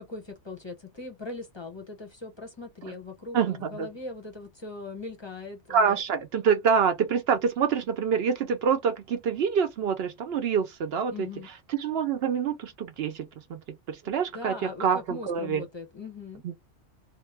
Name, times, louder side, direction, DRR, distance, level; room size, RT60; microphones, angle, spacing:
voice 1, 0.0-6.0 11.1-11.5 14.0-16.4, left 3 dB, 25° left, 0.7 m, -40 dB
voice 2, 3.3-3.9 5.7-11.3 11.8-13.6 13.9-15.6 16.4-16.5, right 6 dB, 65° right, 0.7 m, -26 dB
2.7 x 2.2 x 3.2 m
omnidirectional pair, 1.3 m